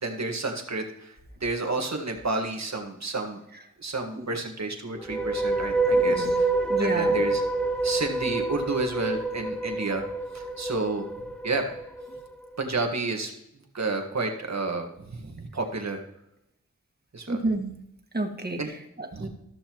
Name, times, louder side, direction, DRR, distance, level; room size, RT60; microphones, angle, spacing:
voice 1, 0.0-3.4 3.8-6.5 6.8-7.4 7.8-10.0 10.3-11.1 11.4-11.6 12.6-13.3 13.7-16.0 17.1-17.4 18.6-18.7 19.1-19.3, right 3 dB, 65° right, 3 dB, 1.7 m, -30 dB
sound 1, 5.0-12.3, right 2 dB, 5° left, 0.8 m, -27 dB
voice 2, 6.0-6.4 6.6-7.1 17.3-17.8 18.1-19.3, right 2 dB, 35° right, 4 dB, 1.7 m, -30 dB
14.0 x 6.5 x 3.1 m, 0.81 s
cardioid pair, 40°, 30 cm